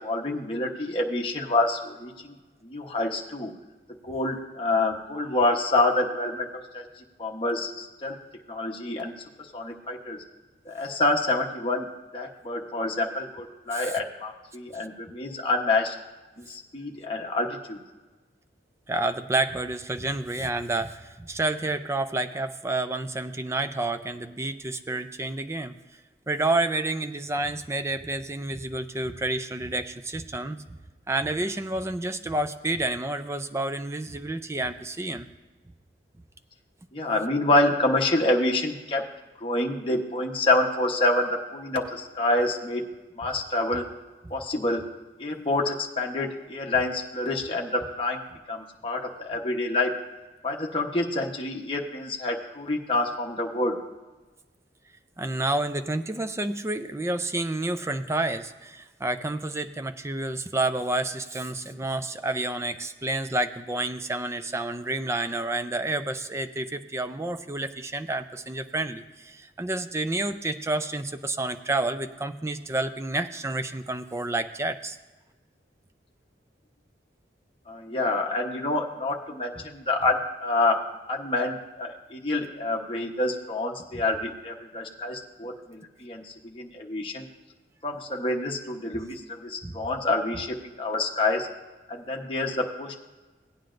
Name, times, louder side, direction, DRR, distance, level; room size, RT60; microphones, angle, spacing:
voice 1, 0.0-2.4 2.6-3.5 4.0-6.8 7.2-8.2 8.5-9.1 9.5-10.2 10.7-11.9 12.1-16.0 16.4-17.8 36.9-39.1 39.4-42.8 43.2-43.9 44.3-44.9 45.2-48.2 48.5-49.9 50.4-53.8 77.7-87.3 87.8-91.5 91.9-92.9, left 2 dB, 30° left, -1 dB, 1.0 m, -27 dB
voice 2, 18.9-25.7 26.3-30.6 31.1-35.3 55.2-75.0 83.9-84.0 89.6-89.8, right 2 dB, 15° right, 9 dB, 0.4 m, -29 dB
17.0 x 9.4 x 2.5 m, 1.2 s
head